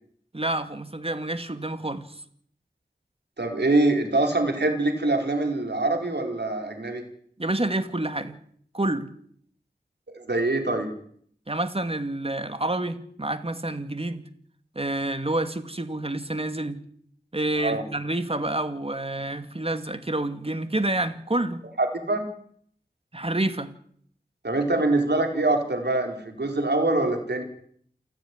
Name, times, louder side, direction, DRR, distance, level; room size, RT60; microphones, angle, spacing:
voice 1, 0.3-2.2 7.4-8.4 8.7-9.1 11.5-14.3 14.7-16.8 17.3-21.6 23.1-23.7, right 1 dB, 35° right, 9 dB, 2.5 m, -28 dB
voice 2, 3.4-7.0 10.1-10.9 17.6-17.8 21.8-22.2 24.4-27.4, right 2 dB, 80° right, 4 dB, 4.7 m, -24 dB
29.0 x 10.0 x 10.0 m, 0.63 s
wide cardioid pair, 55°, 17 cm